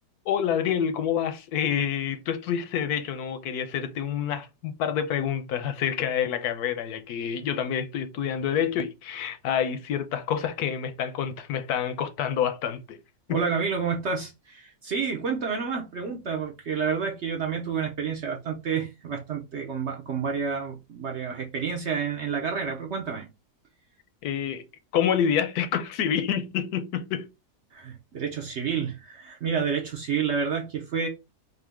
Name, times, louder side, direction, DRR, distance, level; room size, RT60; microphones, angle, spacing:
voice 1, 0.3-13.0 13.3-13.4 24.2-24.6 24.9-27.3, left 8 dB, 75° left, 1.1 m, -27 dB
voice 2, 13.3-23.3 27.7-31.1, right 6 dB, 55° right, 0.8 m, -29 dB
3.7 x 2.7 x 3.4 m
omnidirectional pair, 1.8 m